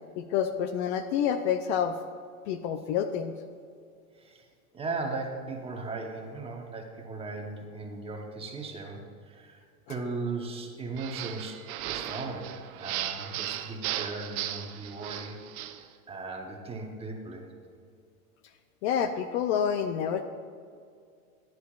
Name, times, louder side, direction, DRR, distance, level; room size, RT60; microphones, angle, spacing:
voice 1, 0.2-1.9 2.5-3.3 18.8-20.2, left 8 dB, 45° left, 9 dB, 0.5 m, -28 dB
voice 2, 4.7-9.0 9.3-9.6 9.9-15.4 15.8-17.5, right 3 dB, 10° right, 1 dB, 1.0 m, -37 dB
sound 1, 11.0-15.8, right 12 dB, 65° right, 0.8 m, -36 dB
14.5 x 10.5 x 2.4 m, 2.3 s
supercardioid pair, 140°, 46 cm